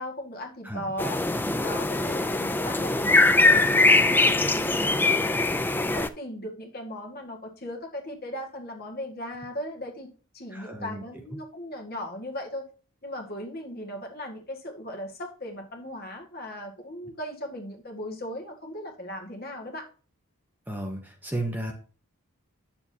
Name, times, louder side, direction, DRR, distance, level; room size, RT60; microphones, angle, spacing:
voice 1, 0.0-1.2 1.6-5.3 5.7-10.1 10.3-12.7 13.0-19.9, left 1 dB, 40° left, 1 dB, 1.8 m, -37 dB
sound 1, 1.0-6.1, left 2 dB, 10° left, 0.3 m, -22 dB
voice 2, 10.5-11.0 20.7-21.7, right 1 dB, 10° right, 2 dB, 0.9 m, -34 dB
9.5 x 7.1 x 2.8 m, 0.39 s
head